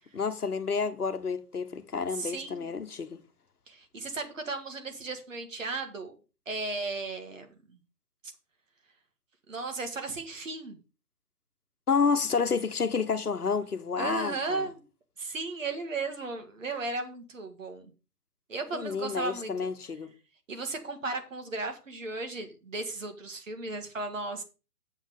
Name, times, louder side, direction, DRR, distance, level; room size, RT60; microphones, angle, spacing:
voice 1, 0.1-3.2 11.9-14.7 18.7-20.1, left 5 dB, 70° left, 1.2 m, -29 dB
voice 2, 2.1-2.7 3.7-6.1 6.5-7.8 8.2-8.3 9.5-10.8 14.0-14.8 15.2-17.9 18.5-19.7 20.5-24.4, right 3 dB, 55° right, 1.9 m, -35 dB
7.3 x 7.3 x 5.1 m
figure-of-eight pair, 135°, 47 cm